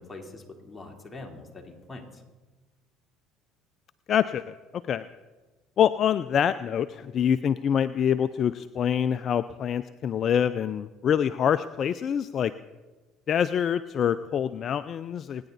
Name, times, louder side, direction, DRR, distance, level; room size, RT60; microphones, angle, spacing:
voice 1, 0.0-2.2, left 2 dB, 20° left, 1 dB, 3.4 m, -43 dB
voice 2, 4.1-5.1 5.8-12.5 13.3-15.5, left 8 dB, 50° left, 14 dB, 0.4 m, -25 dB
26.5 x 10.0 x 4.1 m, 1.2 s
hypercardioid pair, 75°, 0 cm